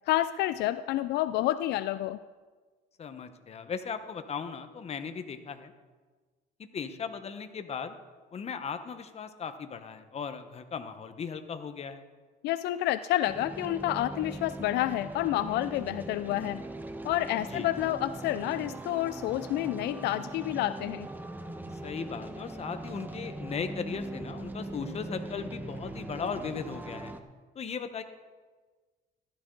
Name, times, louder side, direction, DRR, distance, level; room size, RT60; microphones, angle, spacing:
voice 1, 0.1-2.2 12.4-16.6 17.0-21.1, left 14 dB, 80° left, 14 dB, 0.4 m, -29 dB
voice 2, 3.0-5.7 6.7-7.9 8.3-12.0 17.5-17.7 21.8-27.1 27.5-28.0, left 6 dB, 40° left, 9 dB, 1.1 m, -37 dB
sound 1, 13.3-27.2, right 2 dB, 10° right, 0.9 m, -40 dB
14.5 x 12.5 x 3.9 m, 1.4 s
cardioid pair, 110°, 17 cm